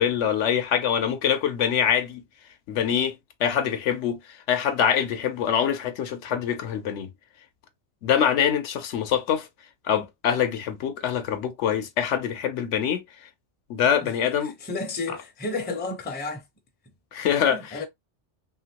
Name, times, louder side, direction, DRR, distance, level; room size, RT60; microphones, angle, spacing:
voice 1, 0.0-2.2 2.7-7.1 8.0-9.5 9.8-13.0 13.7-14.5 15.1-15.2 17.1-17.9, left 8 dB, 80° left, 1.0 m, -24 dB
voice 2, 14.6-16.4 17.4-17.8, left 3 dB, 15° left, 0.4 m, -32 dB
2.9 x 2.7 x 2.8 m
omnidirectional pair, 1.2 m